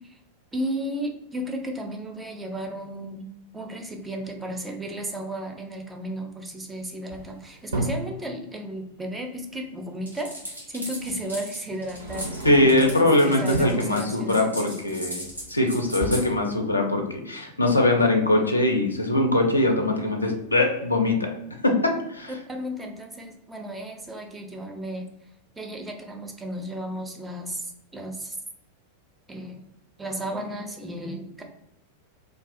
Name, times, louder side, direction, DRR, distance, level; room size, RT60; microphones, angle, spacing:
voice 1, 0.5-12.3 12.9-14.7 15.9-16.2 22.5-25.1 25.6-28.4 29.3-29.6 30.0-31.4, right 1 dB, 10° right, 3 dB, 0.4 m, -34 dB
sound 1, 7.1-8.2 9.8-9.9 11.0-11.2 11.8-13.0 13.4-13.9 15.2-15.6 15.9-16.1, right 2 dB, 70° right, 0.5 m, -32 dB
sound 2, 10.1-16.2, equal, 90° right, 1.1 m, -37 dB
voice 2, 12.4-15.2 15.5-21.3 21.6-22.3, left 2 dB, 80° left, 3 dB, 0.4 m, -22 dB
2.3 x 2.3 x 2.4 m, 0.82 s
figure-of-eight pair, 90°, 0 cm